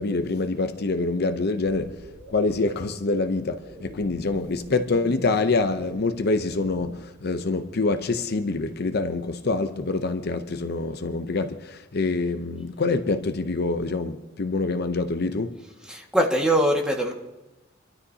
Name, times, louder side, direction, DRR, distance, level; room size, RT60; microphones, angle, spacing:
voice 1, 0.0-1.9 2.3-15.6, left 3 dB, 55° left, 0.7 m, -26 dB
sound 1, 1.6-7.0, equal, 75° right, 2.8 m, -44 dB
voice 2, 15.8-17.1, equal, 5° right, 1.7 m, -22 dB
29.0 x 12.5 x 2.8 m
head